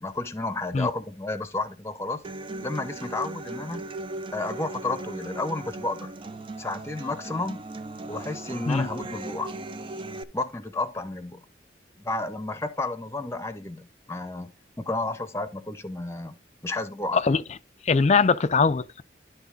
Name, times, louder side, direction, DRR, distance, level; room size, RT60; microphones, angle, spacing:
voice 1, 0.0-2.2 2.6-3.8 4.3-6.1 6.6-7.6 8.1-9.5 10.3-11.4 12.0-14.5 14.8-16.4 16.6-17.2, left 2 dB, 15° left, 0.8 m, -31 dB
Human voice / Acoustic guitar, 2.2-10.2, right 2 dB, 30° right, 0.5 m, -38 dB
voice 2, 17.8-19.0, left 4 dB, 40° left, 0.4 m, -21 dB
11.5 x 4.0 x 3.9 m
head